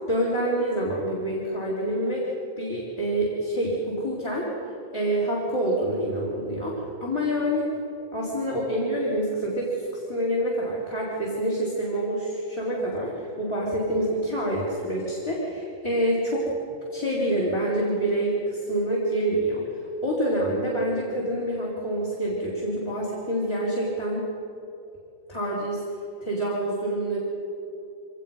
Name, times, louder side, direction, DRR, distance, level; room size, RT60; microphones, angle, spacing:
voice 1, 0.1-4.5 4.9-7.7 8.1-16.4 16.9-19.6 20.0-24.3 25.3-25.8 26.2-27.2, right 1 dB, 20° left, -6 dB, 3.9 m, -27 dB
24.5 x 19.0 x 5.6 m, 2.6 s
omnidirectional pair, 1.4 m